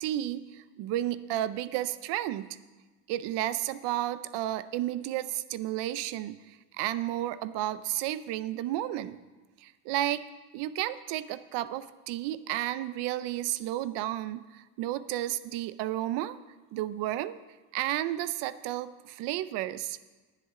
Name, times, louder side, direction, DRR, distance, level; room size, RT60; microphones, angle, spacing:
voice 1, 0.0-2.5 3.1-9.2 9.6-10.2 10.5-16.4 16.7-17.4 17.7-20.0, right 14 dB, 80° right, 14 dB, 0.7 m, -32 dB
20.5 x 7.5 x 3.8 m, 1.2 s
cardioid pair, 170°, 41 cm